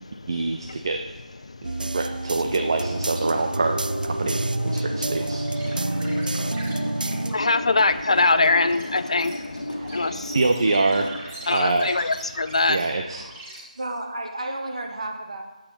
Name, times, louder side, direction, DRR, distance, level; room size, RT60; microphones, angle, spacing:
voice 1, 0.3-1.0 1.8-5.5 9.8-9.9 10.3-11.1 11.4-11.9 12.7-13.3, right 3 dB, 35° right, 5 dB, 0.6 m, -25 dB
voice 2, 1.5-1.9 7.3-9.3 9.9-10.3 11.5-12.8, left 3 dB, 45° left, 12 dB, 0.5 m, -22 dB
sound 1, 1.6-7.4, right 2 dB, 85° right, 0.5 m, -28 dB
sound 2, 2.5-11.2, left 1 dB, 70° left, 1.6 m, -34 dB
sound 3, 5.4-13.6, right 1 dB, 10° right, 1.3 m, -42 dB
voice 3, 13.5-15.4, right 1 dB, 50° right, 2 dB, 1.9 m, -32 dB
8.8 x 8.6 x 5.8 m, 1.2 s
figure-of-eight pair, 170°, 5 cm